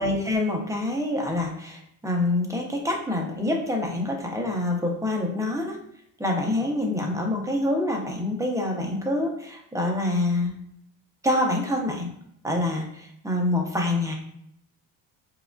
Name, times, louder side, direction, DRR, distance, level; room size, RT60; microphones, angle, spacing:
voice 1, 0.0-5.8 6.2-10.6 11.2-12.1 12.4-14.2, left 1 dB, 5° right, 0 dB, 0.5 m, -26 dB
4.6 x 2.4 x 2.2 m, 0.74 s
cardioid pair, 100°, 48 cm